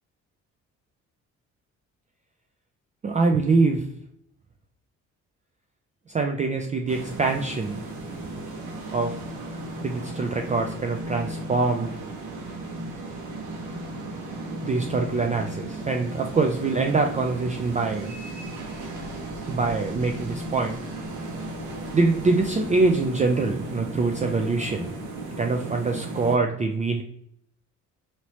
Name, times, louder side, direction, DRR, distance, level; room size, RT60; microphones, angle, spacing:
voice 1, 3.0-3.8 6.1-7.8 8.9-9.2 9.8-11.9 14.6-18.1 19.5-20.8 21.9-24.9 25.4-27.0, right 3 dB, 25° right, 3 dB, 0.3 m, -24 dB
sound 1, 6.9-26.4, right 1 dB, 90° right, 1.0 m, -35 dB
2.9 x 2.8 x 3.0 m, 0.69 s
cardioid pair, 90°, 30 cm